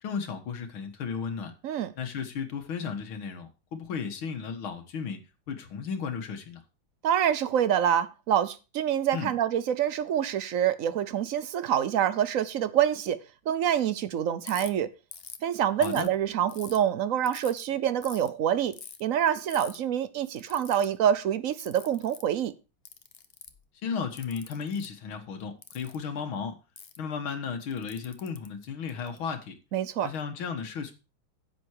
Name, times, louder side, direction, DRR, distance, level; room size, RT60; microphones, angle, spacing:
voice 1, 0.0-1.5 2.0-5.2 5.5-6.6 9.1-9.3 15.8-16.1 23.8-26.6 27.0-29.6 30.0-30.9, left 6 dB, 90° left, 2.3 m, -34 dB
voice 2, 7.0-13.2 13.5-14.9 15.4-18.7 19.0-22.5 29.7-30.1, right 9 dB, 65° right, 0.8 m, -26 dB
Ratchet pawl, 14.5-14.7 15.1-15.4 15.8-16.8 17.3-17.6 18.0-18.3 18.7-19.0 19.5-19.8 20.4-20.9 21.6-22.3 22.9-23.6 24.2-24.9 25.6-26.0 26.8-27.0 27.7-29.2, left 7 dB, 50° left, 0.7 m, -45 dB
10.5 x 7.7 x 4.7 m
omnidirectional pair, 2.2 m